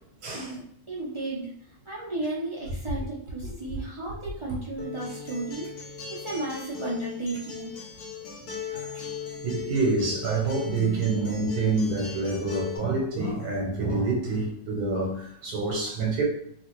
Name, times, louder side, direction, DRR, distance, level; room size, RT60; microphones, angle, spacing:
voice 1, 0.3-1.5 1.8-5.7 6.1-7.7, right 2 dB, 35° right, 0.5 m, -34 dB
Acoustic guitar, 4.8-12.8, left 6 dB, 80° left, 1.3 m, -38 dB
voice 2, 9.4-16.2, right 3 dB, 80° right, 1.3 m, -27 dB
3.0 x 2.6 x 3.0 m
omnidirectional pair, 1.6 m